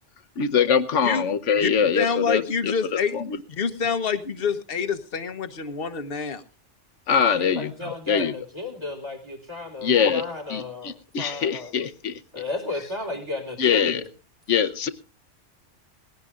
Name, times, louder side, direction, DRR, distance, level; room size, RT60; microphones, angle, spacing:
voice 1, 0.4-3.4 7.1-8.3 9.8-12.2 13.6-14.0 14.5-14.9, left 7 dB, 75° left, 11 dB, 1.3 m, -23 dB
voice 2, 2.0-3.1 3.6-6.4, left 5 dB, 50° left, 9 dB, 1.3 m, -26 dB
voice 3, 7.2-11.8 12.3-14.1, left 3 dB, 20° right, 3 dB, 3.9 m, -34 dB
20.0 x 16.5 x 2.5 m, 0.32 s
omnidirectional pair, 1.2 m